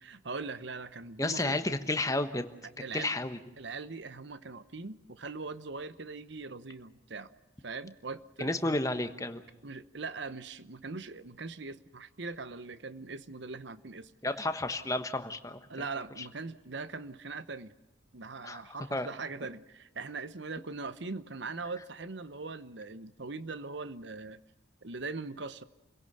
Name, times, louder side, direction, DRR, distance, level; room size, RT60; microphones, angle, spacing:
voice 1, 0.0-1.6 2.6-3.2 3.6-7.3 7.6-8.7 9.6-14.4 15.7-17.7 18.1-24.4 24.8-25.6, right 4 dB, 60° right, 14 dB, 1.0 m, -41 dB
voice 2, 1.2-2.5 2.9-3.4 8.4-9.4 14.2-15.6 18.4-18.6 18.9-19.1, left 2 dB, 15° left, 8 dB, 1.2 m, -31 dB
28.5 x 17.0 x 6.8 m, 1.1 s
head